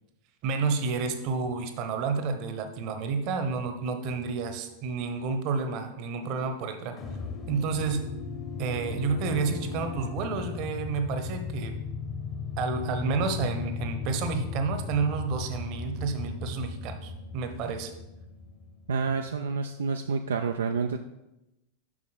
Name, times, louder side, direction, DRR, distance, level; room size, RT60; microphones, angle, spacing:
voice 1, 0.4-7.0 7.5-8.1 8.6-11.8 12.6-17.9, right 4 dB, 40° right, 8 dB, 0.9 m, -30 dB
sound 1, 7.0-19.2, left 5 dB, 25° left, 1.0 m, -36 dB
voice 2, 18.9-21.0, right 5 dB, 70° right, 6 dB, 0.4 m, -28 dB
7.3 x 5.8 x 5.1 m, 0.95 s
figure-of-eight pair, 90°, 0 cm